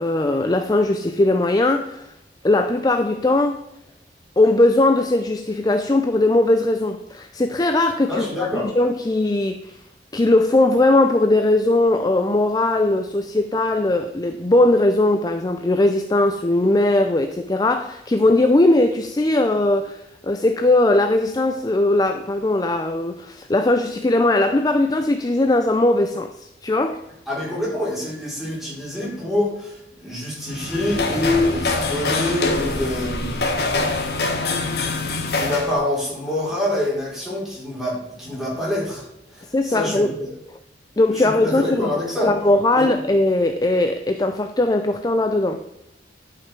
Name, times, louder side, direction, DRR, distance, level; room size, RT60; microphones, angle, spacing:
voice 1, 0.0-2.1 2.4-3.6 4.4-8.3 8.5-9.8 10.1-27.0 39.5-40.1 41.0-41.9 42.2-45.6, left 2 dB, 20° left, 0.4 m, -19 dB
voice 2, 8.1-8.7 27.3-33.4 35.4-40.3 41.1-42.3 42.7-42.9, left 1 dB, ahead, 4.4 m, -26 dB
sound 1, 30.4-35.8, left 3 dB, 65° left, 1.4 m, -24 dB
11.0 x 5.8 x 5.1 m
head